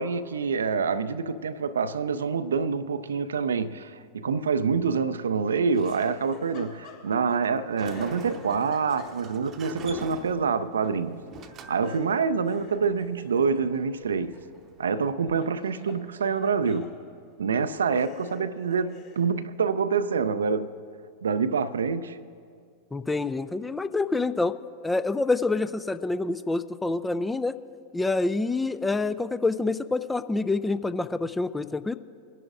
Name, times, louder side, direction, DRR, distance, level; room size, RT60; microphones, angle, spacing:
voice 1, 0.0-11.2 11.7-14.4 14.8-16.9 17.4-20.7 21.2-22.2, right 5 dB, 70° right, 0.4 m, -26 dB
Laughter, 5.7-7.5 7.8-9.5 11.8-15.0 15.3-16.9 17.5-17.6 17.9-19.3, left 5 dB, 45° left, 2.8 m, -47 dB
Sliding door, 7.5-15.1, right 3 dB, 30° right, 0.8 m, -45 dB
voice 2, 22.9-24.5 24.8-27.6 27.9-32.0, left 3 dB, 10° left, 0.3 m, -27 dB
21.5 x 11.0 x 2.5 m
figure-of-eight pair, 90°, 0 cm